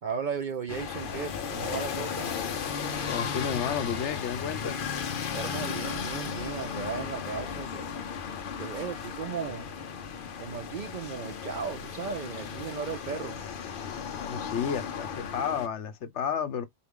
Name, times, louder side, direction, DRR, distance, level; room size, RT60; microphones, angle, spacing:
voice 1, 0.0-2.3 5.3-7.9 8.6-9.7 10.4-13.4, right 6 dB, 55° right, 0.5 m, -36 dB
sound 1, 0.7-15.7, left 6 dB, 50° left, 0.8 m, -35 dB
voice 2, 3.0-4.8 14.1-16.6, left 7 dB, 75° left, 1.0 m, -32 dB
4.4 x 2.4 x 3.6 m
omnidirectional pair, 1.2 m